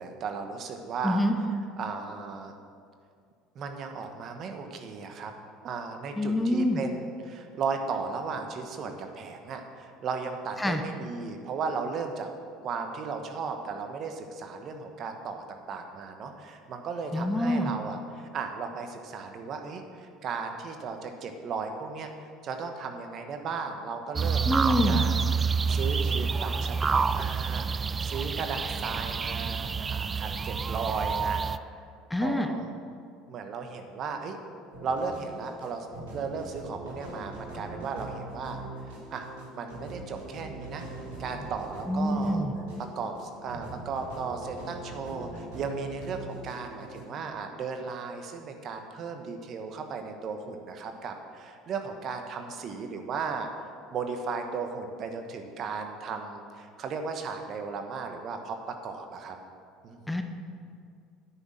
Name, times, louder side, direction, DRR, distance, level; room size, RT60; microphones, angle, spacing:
voice 1, 0.0-1.2 1.8-2.5 3.5-5.3 5.6-12.3 12.6-22.1 22.4-25.1 25.7-31.5 32.2-32.7 33.3-34.4 34.8-35.9 36.1-38.6 39.1-39.3 39.5-40.8 41.2-42.4 42.9-53.5 53.9-59.4 59.8-60.2, right 5 dB, 50° right, 5 dB, 1.2 m, -35 dB
voice 2, 1.0-1.4 6.2-6.8 10.6-10.8 17.1-17.7 24.5-25.0 32.1-32.5 41.9-42.5 60.1-60.2, left 1 dB, 10° left, 6 dB, 0.9 m, -26 dB
sound 1, 24.2-31.6, right 5 dB, 30° right, 0.3 m, -28 dB
sound 2, 34.7-47.0, right 1 dB, 85° right, 3.2 m, -42 dB
9.6 x 6.3 x 7.5 m, 2.2 s
hypercardioid pair, 80°, 0 cm